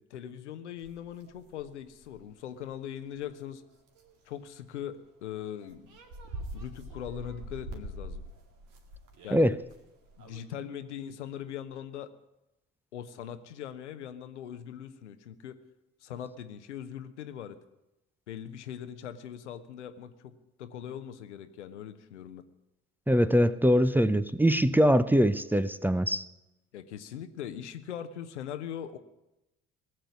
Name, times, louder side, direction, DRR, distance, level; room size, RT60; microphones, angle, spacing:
voice 1, 0.1-3.6 4.3-5.8 6.5-8.2 9.2-9.5 10.2-12.1 12.9-15.6 16.0-17.6 18.3-22.4 26.7-29.0, left 9 dB, 80° left, 10 dB, 0.9 m, -41 dB
sound 1, 0.8-2.2 2.7-2.8 3.2-3.4 3.9-4.1 5.3-5.4 5.6-10.4, right 1 dB, 60° right, 2.2 m, -44 dB
voice 2, 23.1-26.2, equal, 5° right, 15 dB, 0.7 m, -23 dB
18.0 x 7.8 x 9.7 m, 0.93 s
figure-of-eight pair, 50°, 34 cm